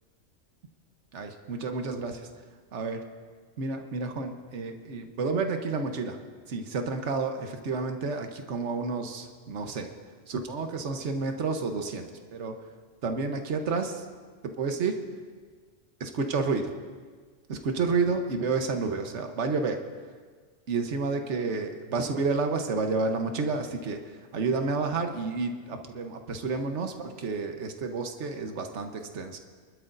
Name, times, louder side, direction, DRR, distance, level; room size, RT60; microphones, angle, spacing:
voice 1, 1.1-2.3 2.7-3.0 3.6-6.2 6.5-9.9 10.3-12.5 13.0-14.1 14.4-15.0 16.0-16.7 17.5-19.8 20.7-29.4, right 4 dB, 70° right, 5 dB, 1.3 m, -30 dB
27.0 x 12.0 x 2.6 m, 1.5 s
omnidirectional pair, 1.3 m